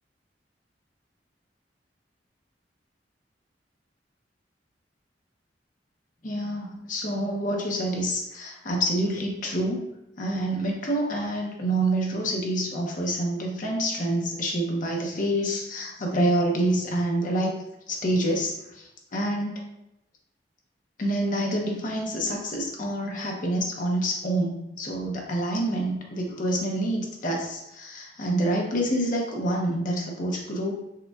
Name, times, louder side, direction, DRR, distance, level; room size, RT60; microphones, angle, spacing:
voice 1, 6.2-9.8 10.2-17.6 17.9-19.6 21.0-30.7, right 1 dB, 50° left, 0 dB, 0.7 m, -27 dB
6.5 x 2.2 x 2.3 m, 0.86 s
head